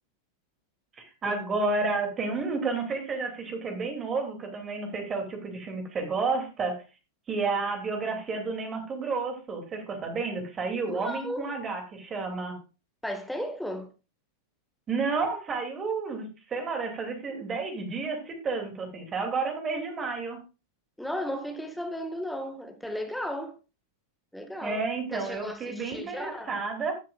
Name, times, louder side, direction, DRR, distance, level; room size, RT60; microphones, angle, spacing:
voice 1, 1.0-6.8 7.3-12.6 14.9-20.4 24.6-26.9, right 4 dB, 25° right, 2.7 m, -31 dB
voice 2, 10.9-11.4 13.0-13.9 21.0-23.5 24.3-24.8 25.1-26.5, equal, ahead, 1.7 m, -35 dB
15.5 x 7.5 x 2.4 m
figure-of-eight pair, 90°, 0 cm